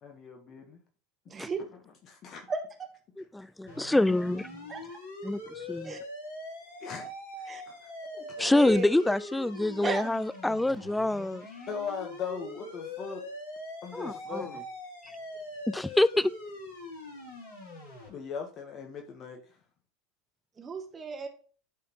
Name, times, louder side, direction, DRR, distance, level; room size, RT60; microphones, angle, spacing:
voice 1, 0.0-0.8 2.0-2.4 3.2-3.3 6.8-7.1 7.7-7.8 8.3-8.8 11.7-13.2 13.8-14.7 18.1-19.4, left 6 dB, 40° left, 1.2 m, -39 dB
voice 2, 1.3-1.6 2.5-2.6 4.7-4.8 5.8-6.0 7.0-7.1 7.5-7.6 8.1-9.1 9.8-10.0 20.6-21.3, right 4 dB, 25° right, 1.2 m, -35 dB
voice 3, 3.2-4.6 5.2-6.0 8.4-11.5 13.9-14.5 15.7-16.3, left 1 dB, 5° left, 0.3 m, -26 dB
sound 1, 3.7-18.1, left 2 dB, 80° left, 2.4 m, -43 dB
11.5 x 4.1 x 3.0 m
hypercardioid pair, 80°, 0 cm